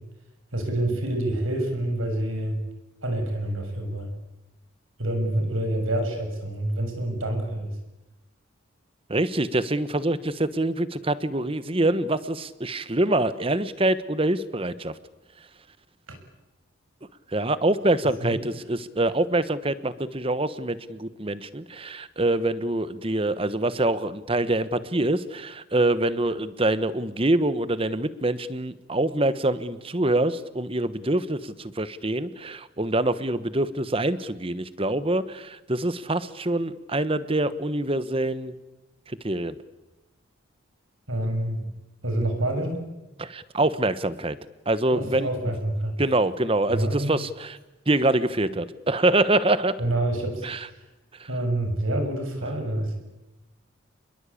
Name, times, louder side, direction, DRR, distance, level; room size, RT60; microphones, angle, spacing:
voice 1, 0.5-2.6 3.0-4.1 5.0-7.7 16.1-16.2 18.2-18.4 41.1-41.7 42.0-42.8 44.9-46.0 46.7-47.1 49.8-50.4 51.3-53.0, right 1 dB, 90° right, 5 dB, 6.7 m, -27 dB
voice 2, 9.1-14.9 17.3-38.5 39.2-39.6 43.2-44.4 44.7-45.3 46.0-47.6 47.9-49.7 50.4-50.6, right 2 dB, 25° right, 14 dB, 1.1 m, -25 dB
28.0 x 22.0 x 8.6 m, 1.0 s
head